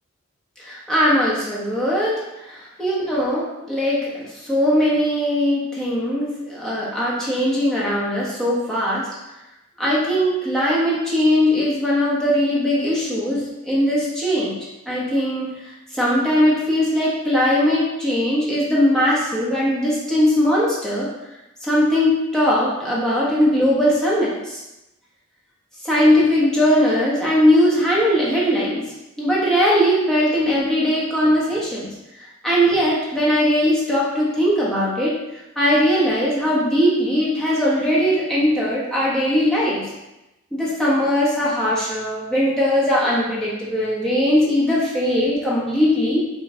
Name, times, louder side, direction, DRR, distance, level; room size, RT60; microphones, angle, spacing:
voice 1, 0.6-2.2 2.5-9.1 9.8-14.6 14.9-15.5 15.9-21.1 21.6-24.6 25.8-28.8 29.2-31.9 32.4-35.1 35.6-39.9 40.5-46.2, equal, ahead, -8 dB, 1.2 m, -20 dB
5.2 x 2.5 x 3.7 m, 0.95 s
head